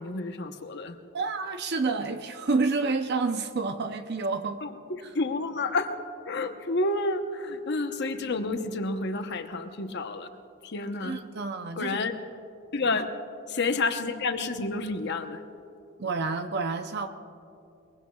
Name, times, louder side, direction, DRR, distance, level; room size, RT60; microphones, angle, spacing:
voice 1, 0.0-1.0 4.6-5.9 6.2-10.3 10.6-11.2 11.8-12.2 12.7-13.1 13.5-15.4, left 3 dB, 55° left, 7 dB, 0.9 m, -30 dB
voice 2, 1.1-4.6 11.0-12.0 12.9-13.0 16.0-17.1, right 4 dB, 55° right, 7 dB, 0.6 m, -29 dB
22.5 x 22.5 x 2.4 m, 2.6 s
head